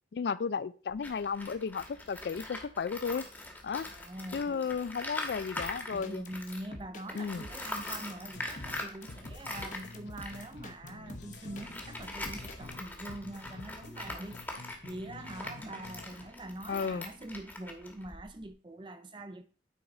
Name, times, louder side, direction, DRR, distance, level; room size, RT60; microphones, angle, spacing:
voice 1, 0.1-3.2 3.6-3.9 4.3-6.2 7.2-7.5 16.7-17.1, left 5 dB, 70° left, 0.4 m, -34 dB
Tools, 0.9-6.7 7.1-18.5, left 2 dB, 10° left, 1.2 m, -43 dB
voice 2, 3.9-4.7 5.9-14.5 14.8-19.4, right 1 dB, 25° right, 0.7 m, -44 dB
sound 1, 5.6-12.8, left 2 dB, 45° left, 1.0 m, -48 dB
sound 2, 8.3-8.8 9.1-12.8 13.1-16.3, left 2 dB, 85° left, 0.8 m, -49 dB
9.1 x 4.7 x 3.8 m
head